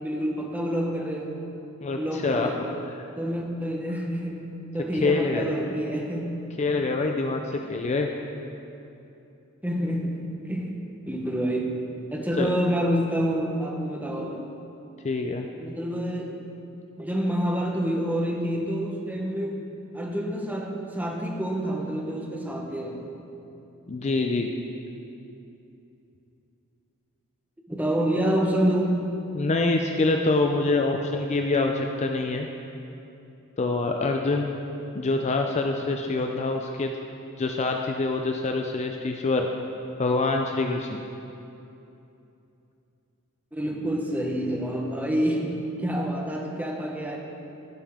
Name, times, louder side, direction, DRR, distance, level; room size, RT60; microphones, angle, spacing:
voice 1, 0.0-1.3 2.0-2.6 3.2-4.5 4.7-6.4 7.6-7.7 9.6-10.7 11.1-11.8 12.1-14.4 15.6-16.3 17.0-19.6 19.9-23.1 27.7-29.0 35.8-35.9 43.5-47.2, equal, 10° right, 0 dB, 1.0 m, -28 dB
voice 2, 1.8-2.5 3.0-3.1 4.9-5.5 6.6-7.4 7.7-8.1 12.4-12.5 15.0-15.5 23.9-24.5 29.3-32.5 33.6-34.5 34.9-36.9 37.4-39.5 40.0-41.0, left 3 dB, 30° left, 3 dB, 0.4 m, -25 dB
15.5 x 5.5 x 3.5 m, 2.8 s
head